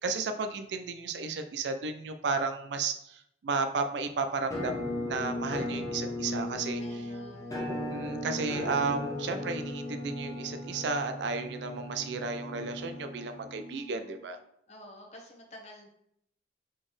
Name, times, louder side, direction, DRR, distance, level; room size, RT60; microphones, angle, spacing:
voice 1, 0.0-6.8 7.9-14.4, right 4 dB, 75° right, 7 dB, 0.4 m, -33 dB
Musical instrument, 4.5-14.3, left 1 dB, 20° left, 0.7 m, -36 dB
voice 2, 6.8-7.6 14.7-15.9, left 1 dB, 35° left, 0 dB, 1.0 m, -50 dB
4.1 x 3.9 x 3.2 m, 0.74 s
head